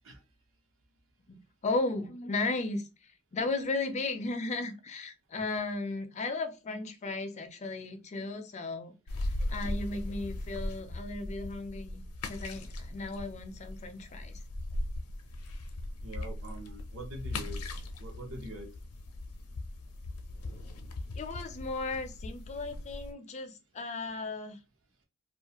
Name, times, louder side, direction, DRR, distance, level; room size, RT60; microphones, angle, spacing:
voice 1, 1.6-8.9 9.5-14.4 21.2-24.6, left 3 dB, 30° left, 0.4 m, -35 dB
sound 1, 9.1-23.1, left 1 dB, 85° left, 0.5 m, -39 dB
voice 2, 16.0-17.6 18.0-18.7, right 1 dB, 60° right, 0.8 m, -44 dB
2.4 x 2.3 x 2.8 m
head